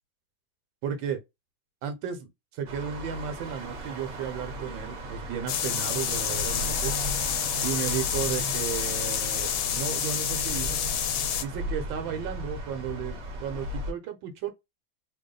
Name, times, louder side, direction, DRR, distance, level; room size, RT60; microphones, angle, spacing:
voice 1, 0.8-1.2 1.8-6.9 7.6-10.8 11.4-14.5, right 8 dB, 75° right, 1.6 m, -34 dB
sound 1, 2.7-13.9, right 1 dB, 55° right, 1.1 m, -36 dB
sound 2, 5.5-11.4, left 9 dB, 80° left, 1.4 m, -29 dB
3.5 x 2.1 x 3.8 m
omnidirectional pair, 2.2 m